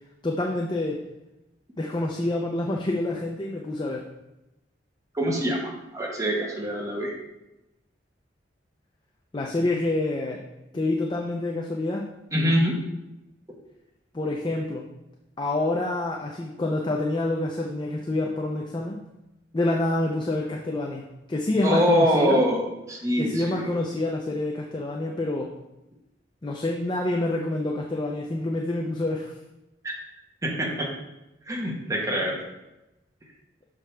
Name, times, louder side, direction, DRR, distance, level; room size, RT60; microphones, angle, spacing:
voice 1, 0.2-1.0 1.8-4.0 9.3-10.4 10.7-12.1 14.1-14.8 15.4-19.0 19.5-22.4 23.2-25.5 26.4-29.3, left 2 dB, 25° left, 0 dB, 0.5 m, -27 dB
voice 2, 5.1-7.1 12.3-12.8 21.6-23.7 29.8-29.9 30.4-30.9 31.5-32.4, equal, 20° right, -3 dB, 1.1 m, -24 dB
6.3 x 4.9 x 3.3 m, 0.96 s
head